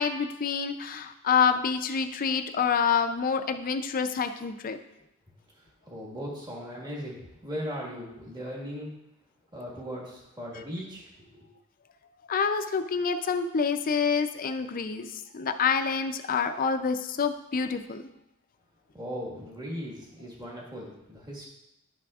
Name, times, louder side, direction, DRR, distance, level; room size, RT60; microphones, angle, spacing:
voice 1, 0.0-4.8 12.3-18.1, left 6 dB, 40° left, 8 dB, 0.4 m, -27 dB
voice 2, 5.5-8.9 9.5-11.5 18.9-21.5, equal, 20° right, -3 dB, 1.6 m, -38 dB
10.5 x 5.9 x 2.4 m, 0.87 s
head